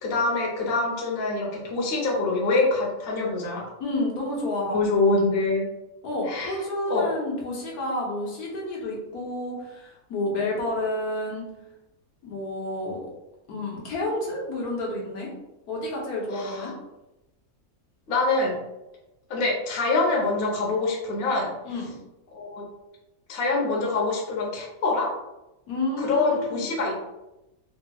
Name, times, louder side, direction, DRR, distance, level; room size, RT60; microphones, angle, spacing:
voice 1, 0.0-3.6 4.6-5.7 6.3-6.6 6.9-7.0 16.3-16.7 18.1-18.5 19.3-21.5 22.3-22.6 23.3-25.1 26.0-27.0, left 3 dB, 50° left, -2 dB, 0.9 m, -25 dB
voice 2, 3.8-4.8 6.0-11.5 12.2-13.1 13.5-15.3 15.7-16.7 21.6-21.9 25.7-26.6, left 1 dB, 85° left, -3 dB, 1.4 m, -30 dB
3.4 x 2.8 x 2.3 m, 0.95 s
omnidirectional pair, 1.6 m